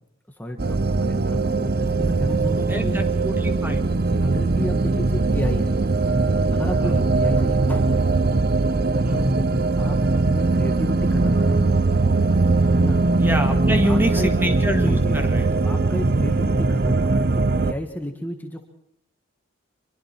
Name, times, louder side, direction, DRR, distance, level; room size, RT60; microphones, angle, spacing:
voice 1, 0.3-3.0 4.0-5.8 6.5-8.1 8.7-10.0 10.3-11.7 12.7-13.0 13.7-14.3 14.8-18.7, equal, 10° left, 3 dB, 1.5 m, -32 dB
sound 1, 0.6-17.7, right 3 dB, 50° right, 0.7 m, -20 dB
voice 2, 2.7-3.8 4.2-4.4 6.8-7.1 9.0-9.5 13.2-15.5, equal, 10° right, 6 dB, 2.0 m, -26 dB
25.5 x 23.0 x 4.5 m, 0.70 s
head